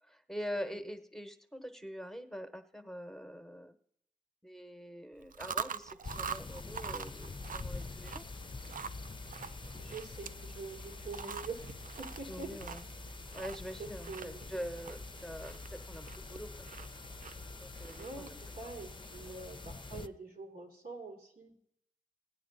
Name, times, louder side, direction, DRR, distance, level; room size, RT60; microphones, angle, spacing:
voice 1, 0.0-3.8 4.4-8.2 11.2-11.3 12.3-12.9 13.3-16.9 17.6-18.3 19.3-19.4, equal, 5° left, 8 dB, 1.0 m, -44 dB
Chewing mastication, 5.2-18.4, right 7 dB, 65° right, 0.4 m, -45 dB
sound 1, 6.0-20.1, left 3 dB, 35° left, 0.5 m, -46 dB
voice 2, 9.8-11.6 12.2-12.5 13.8-14.5 18.0-18.3 18.6-21.5, right 4 dB, 85° right, 1 dB, 2.4 m, -45 dB
16.0 x 9.2 x 4.0 m, 0.71 s
cardioid pair, 40°, 15 cm